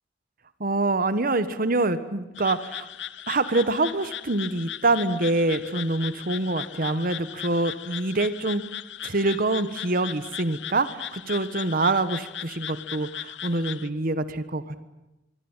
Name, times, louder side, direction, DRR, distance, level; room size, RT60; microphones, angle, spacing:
voice 1, 0.6-2.9 3.3-8.6 9.0-14.8, right 2 dB, 55° right, 13 dB, 1.4 m, -25 dB
sound 1, 2.4-13.9, left 11 dB, 85° left, 0.9 m, -38 dB
26.0 x 22.5 x 9.0 m, 0.97 s
head